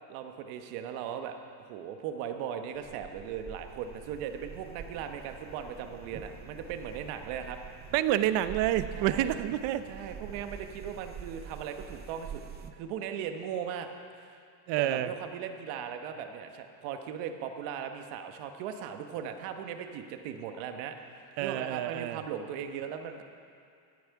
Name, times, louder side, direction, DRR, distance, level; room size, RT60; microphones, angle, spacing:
voice 1, 0.1-7.6 8.9-9.3 9.9-12.4 12.7-13.9 14.8-23.2, right 8 dB, 85° right, 6 dB, 1.2 m, -38 dB
sound 1, 2.8-12.7, right 8 dB, 25° right, 0.3 m, -46 dB
sound 2, 4.5-10.5, left 2 dB, 35° left, 3.9 m, -57 dB
voice 2, 7.9-9.8 14.7-15.1 21.4-22.2, right 13 dB, 65° right, 12 dB, 0.7 m, -28 dB
15.0 x 10.5 x 4.7 m, 2.4 s
cardioid pair, 150°, 48 cm